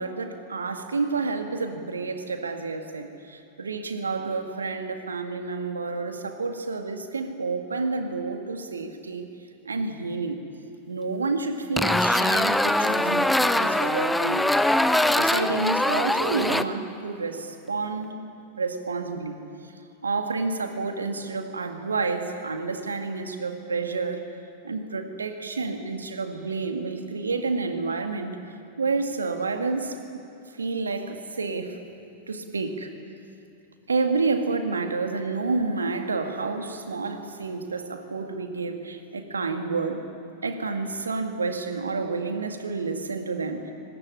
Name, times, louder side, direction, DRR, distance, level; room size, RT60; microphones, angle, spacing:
voice 1, 0.0-9.2 9.7-10.4 10.9-14.5 15.0-18.1 18.6-19.4 20.0-24.2 24.6-28.4 28.8-30.0 30.6-31.8 32.3-32.9 33.9-40.0 40.4-43.7, right 4 dB, 75° right, 6 dB, 2.0 m, -29 dB
sound 1, 11.8-16.6, left 1 dB, 5° left, 0.8 m, -22 dB
23.5 x 19.5 x 10.0 m, 2.7 s
figure-of-eight pair, 90°, 0 cm